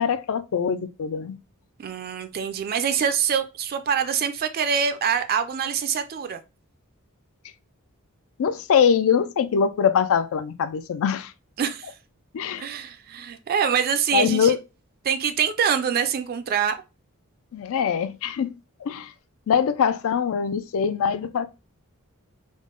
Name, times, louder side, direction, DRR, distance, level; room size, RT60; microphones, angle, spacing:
voice 1, 0.0-1.4 8.4-11.3 12.3-12.6 14.1-14.6 17.5-18.5 18.8-19.1 19.5-21.5, left 7 dB, 65° left, 0.4 m, -23 dB
voice 2, 1.8-6.4 11.6-11.9 12.6-14.5 15.0-16.7, right 7 dB, 45° right, 0.3 m, -25 dB
3.6 x 2.0 x 3.7 m
head